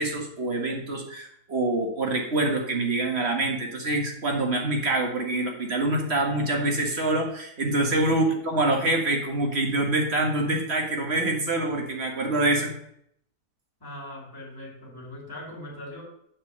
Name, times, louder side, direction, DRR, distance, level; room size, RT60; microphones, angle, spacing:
voice 1, 0.0-12.7, right 2 dB, 40° right, 1 dB, 1.8 m, -25 dB
voice 2, 8.0-8.4 13.8-16.0, left 1 dB, 15° left, -3 dB, 2.4 m, -41 dB
7.5 x 4.7 x 6.7 m, 0.72 s
omnidirectional pair, 1.7 m